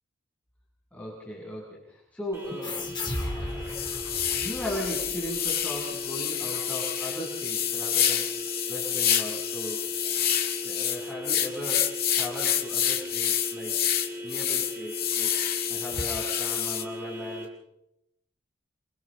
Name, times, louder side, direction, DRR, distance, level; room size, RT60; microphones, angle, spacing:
voice 1, 0.9-3.0 3.4-3.7 4.3-8.3 8.7-9.8 10.6-13.8 14.2-15.3 15.7-17.5, equal, 10° left, -5 dB, 7.7 m, -38 dB
sound 1, 2.3-17.4, left 1 dB, 15° right, 5.0 m, -38 dB
sound 2, 2.5-2.6 3.1-3.2 3.7-16.8, left 10 dB, 50° left, 2.2 m, -28 dB
sound 3, 2.6-5.8, left 2 dB, 25° left, 3.3 m, -36 dB
29.0 x 27.0 x 4.0 m, 0.80 s
head